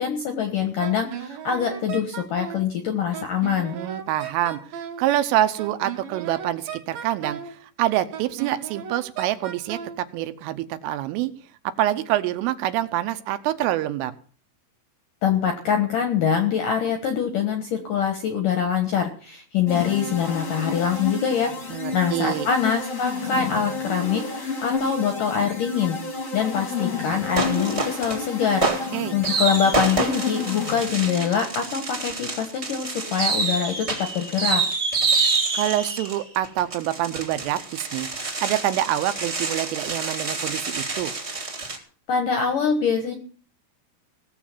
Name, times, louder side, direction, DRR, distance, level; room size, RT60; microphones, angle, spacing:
voice 1, 0.0-3.8 15.2-28.7 29.1-34.6 42.1-43.1, left 7 dB, 75° left, 6 dB, 2.0 m, -24 dB
Wind instrument woodwind instrument, 0.8-2.7 3.1-5.1 5.6-7.6 8.1-10.0, right 8 dB, 55° right, 3.1 m, -35 dB
voice 2, 3.7-4.6 5.0-11.3 11.6-14.1 21.7-22.5 28.6-29.2 35.5-41.1, right 13 dB, 80° right, 10 dB, 3.4 m, -26 dB
sound 1, 19.7-31.4, left 3 dB, 40° left, 1.0 m, -31 dB
sound 2, 27.4-28.2 28.6-41.8, right 3 dB, 20° right, 1.7 m, -27 dB
17.5 x 7.4 x 7.2 m, 0.42 s
omnidirectional pair, 5.8 m